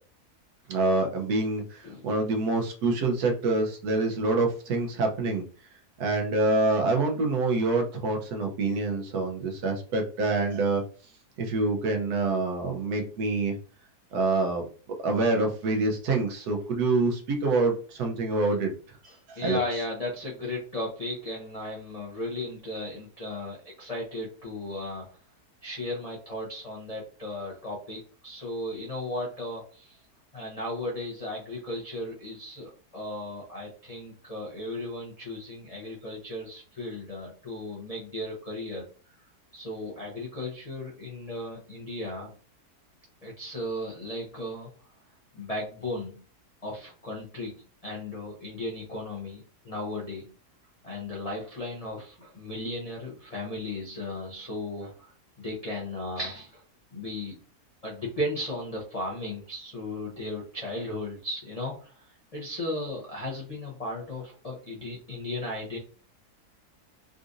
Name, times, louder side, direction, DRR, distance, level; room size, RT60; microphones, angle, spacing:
voice 1, 0.7-5.4 6.0-10.8 11.4-13.6 14.1-14.6 15.0-18.7 19.3-19.6, right 3 dB, 80° right, 3 dB, 1.3 m, -26 dB
voice 2, 19.4-25.1 25.6-30.0 30.3-38.8 39.5-42.3 43.2-44.7 45.3-46.2 46.6-47.5 47.8-50.3 50.8-55.1 55.4-56.6 56.9-57.3 57.8-61.9 62.3-65.8, left 1 dB, 50° left, -5 dB, 0.4 m, -35 dB
3.8 x 2.5 x 2.5 m, 0.39 s
omnidirectional pair, 1.7 m